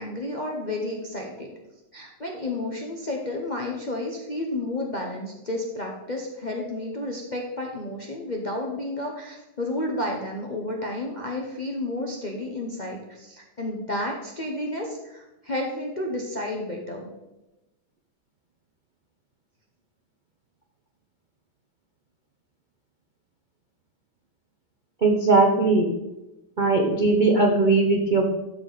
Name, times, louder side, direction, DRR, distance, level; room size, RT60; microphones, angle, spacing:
voice 1, 0.0-1.5 1.9-17.1, left 1 dB, 45° left, 0 dB, 0.5 m, -31 dB
voice 2, 25.0-25.9 26.6-28.4, right 3 dB, 80° right, 1 dB, 0.4 m, -19 dB
12.5 x 4.8 x 4.0 m, 0.97 s
omnidirectional pair, 2.2 m